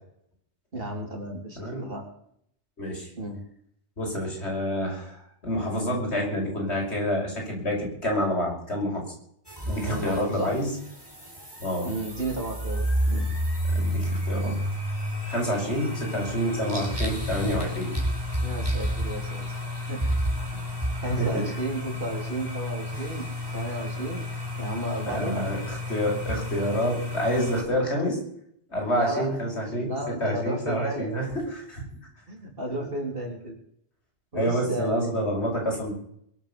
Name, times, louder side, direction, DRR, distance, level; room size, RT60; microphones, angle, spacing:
voice 1, 0.7-2.0 3.2-3.4 9.8-10.5 11.8-13.3 18.4-20.0 20.5-20.7 21.0-23.3 23.5-24.3 24.6-25.4 28.9-29.3 29.8-31.2 32.3-33.5 34.3-35.1, right 1 dB, 55° right, 1 dB, 4.2 m, -33 dB
voice 2, 2.8-3.1 4.0-9.0 9.7-10.7 11.6-11.9 13.7-14.6 15.3-17.9 21.0-21.3 25.0-28.2 28.7-29.9 30.2-31.8 34.3-35.9, equal, 80° left, -1 dB, 6.4 m, -28 dB
sound 1, 9.5-27.6, equal, 20° right, 4.1 m, -31 dB
23.0 x 8.2 x 7.2 m, 0.68 s
omnidirectional pair, 1.1 m